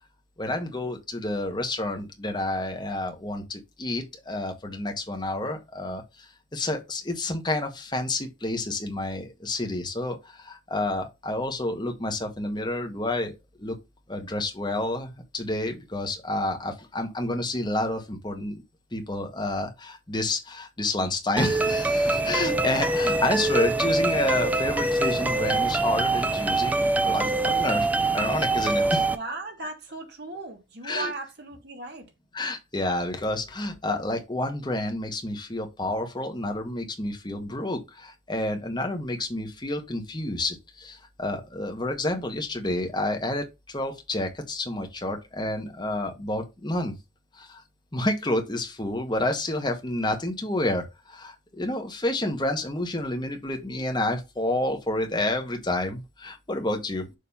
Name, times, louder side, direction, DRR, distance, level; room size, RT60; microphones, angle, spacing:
voice 1, 0.4-13.8 14.1-18.6 18.9-29.0 30.8-31.1 32.3-47.0 47.3-47.6 47.9-57.1, left 2 dB, 25° left, 1.3 m, -29 dB
sound 1, 21.4-29.2, right 2 dB, 10° right, 0.5 m, -24 dB
voice 2, 29.1-32.1, right 3 dB, 60° right, 1.8 m, -37 dB
6.7 x 3.1 x 5.4 m
head